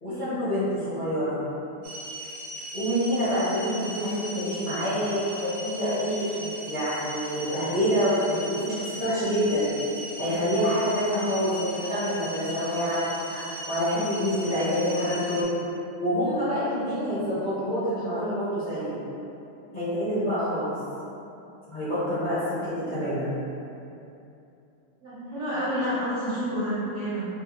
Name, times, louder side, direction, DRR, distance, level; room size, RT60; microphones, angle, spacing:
voice 1, 0.0-1.4 2.7-9.6 10.2-13.4 13.7-15.4 16.0-18.9 19.7-20.7 21.7-23.3, equal, 35° left, -14 dB, 0.9 m, -27 dB
sound 1, 1.8-15.4, equal, 70° right, 1.2 m, -38 dB
voice 2, 25.0-27.3, equal, 50° right, -12 dB, 1.0 m, -30 dB
4.1 x 2.3 x 2.9 m, 2.7 s
omnidirectional pair, 1.9 m